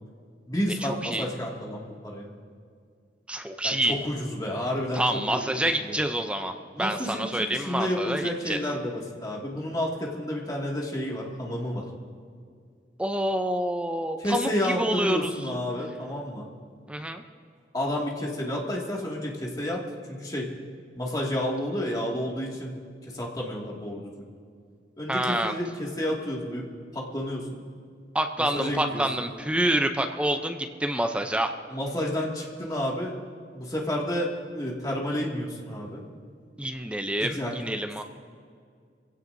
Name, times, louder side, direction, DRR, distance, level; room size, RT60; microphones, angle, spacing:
voice 1, 0.5-2.3 3.6-5.0 5.3-6.0 6.7-11.9 14.2-16.5 17.7-20.5 21.0-22.8 23.1-24.2 25.0-26.7 26.9-27.6 28.5-29.0 31.7-33.2 33.5-36.0 37.2-37.5, left 1 dB, 20° left, -3 dB, 2.1 m, -30 dB
voice 2, 3.3-3.9 4.9-6.5 6.8-8.6 13.0-15.3 16.9-17.2 25.1-25.5 28.1-31.5 36.6-38.0, right 1 dB, 5° right, 6 dB, 0.5 m, -27 dB
24.5 x 16.0 x 2.7 m, 2.2 s
head